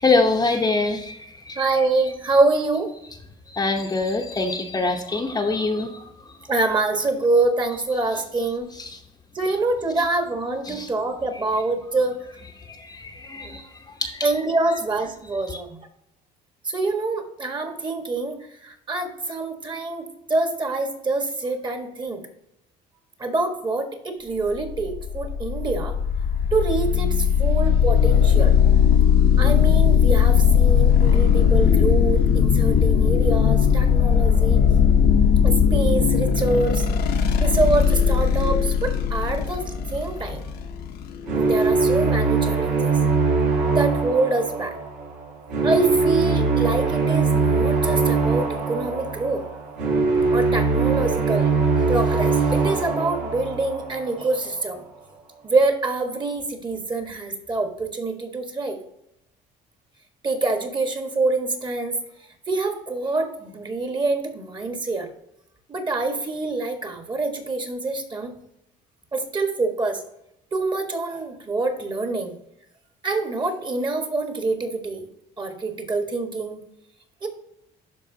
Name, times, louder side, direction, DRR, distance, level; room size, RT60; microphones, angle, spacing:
voice 1, 0.0-1.6 3.5-6.0 8.9-9.0 10.7-10.9 12.6-14.3, left 3 dB, 25° left, 2 dB, 0.8 m, -24 dB
voice 2, 1.5-2.9 6.5-8.7 9.3-12.2 13.4-13.6 14.2-15.8 16.6-22.2 23.2-26.0 26.5-28.5 29.4-34.6 35.4-36.8 37.4-40.4 41.3-43.0 43.7-44.8 45.6-49.4 50.3-51.5 51.9-54.8 55.4-58.8 60.2-62.0 62.5-65.1 65.7-68.3 69.1-70.0 70.5-72.3 73.0-75.1 75.4-76.6 77.2-77.3, right 3 dB, 25° right, 4 dB, 1.6 m, -25 dB
sound 1, 24.6-42.0, left 7 dB, 70° left, 1.0 m, -18 dB
sound 2, 41.2-54.3, right 4 dB, 85° right, 3.0 m, -22 dB
12.5 x 4.5 x 2.8 m, 0.79 s
cardioid pair, 110°, 17 cm